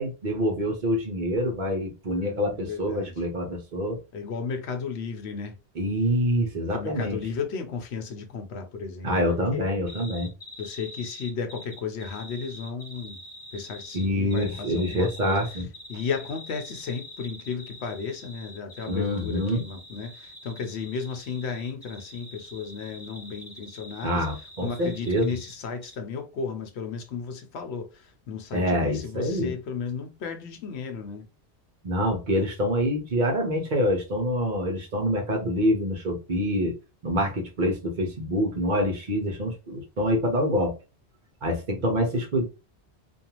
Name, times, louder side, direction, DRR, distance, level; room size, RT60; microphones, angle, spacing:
voice 1, 0.0-4.0 5.8-7.2 9.0-10.3 13.9-15.7 18.9-19.6 24.0-25.3 28.5-29.5 31.8-36.8 37.0-40.7 41.4-42.4, equal, 50° right, 0.7 m, -26 dB
voice 2, 2.1-3.2 4.1-5.6 6.7-9.9 10.6-13.2 13.5-15.4 15.9-24.3 24.6-31.3 41.7-42.0, left 5 dB, 70° left, 0.9 m, -34 dB
sound 1, 9.9-25.6 25.8-25.9, left 1 dB, ahead, 1.0 m, -45 dB
2.5 x 2.3 x 2.9 m
omnidirectional pair, 1.1 m